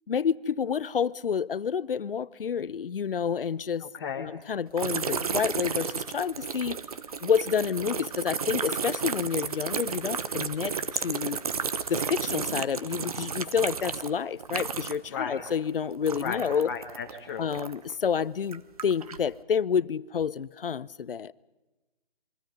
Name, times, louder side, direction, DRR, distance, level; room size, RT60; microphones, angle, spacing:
voice 1, 0.1-3.9 4.2-6.8 7.2-11.4 11.9-16.7 17.4-21.3, left 7 dB, 65° left, 0.8 m, -29 dB
voice 2, 3.8-4.3 15.1-15.4 16.2-17.4, left 6 dB, 25° left, 1.6 m, -35 dB
sound 1, 4.8-15.1 15.4-17.9 18.4-19.3, right 6 dB, 40° right, 1.0 m, -33 dB
27.5 x 23.5 x 5.3 m
hypercardioid pair, 170°, 30 cm